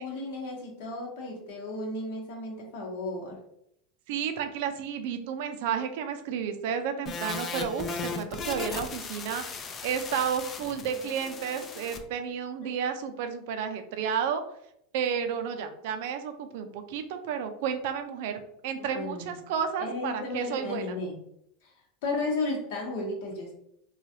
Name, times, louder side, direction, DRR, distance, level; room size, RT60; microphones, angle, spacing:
voice 1, 0.0-3.4 12.6-12.7 18.9-19.4 19.8-21.1 21.6-21.7 22.0-23.5, left 2 dB, 70° left, -1 dB, 1.0 m, -34 dB
voice 2, 4.1-9.4 9.8-14.4 14.9-18.4 18.6-21.0, right 7 dB, 70° right, 7 dB, 0.4 m, -31 dB
sound 1, 7.1-12.0, left 4 dB, 35° left, 0.4 m, -37 dB
3.2 x 2.3 x 2.7 m, 0.74 s
hypercardioid pair, 95°, 0 cm